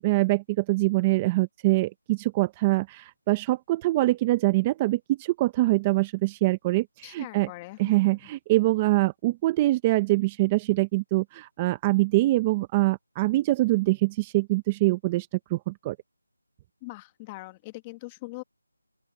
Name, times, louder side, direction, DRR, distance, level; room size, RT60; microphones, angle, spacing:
voice 1, 0.0-7.5 7.8-16.0, right 19 dB, 15° right, 0.8 m, -24 dB
voice 2, 7.0-8.2 16.8-18.4, left 22 dB, 10° left, 1.5 m, -42 dB
open air
figure-of-eight pair, 175°, 0 cm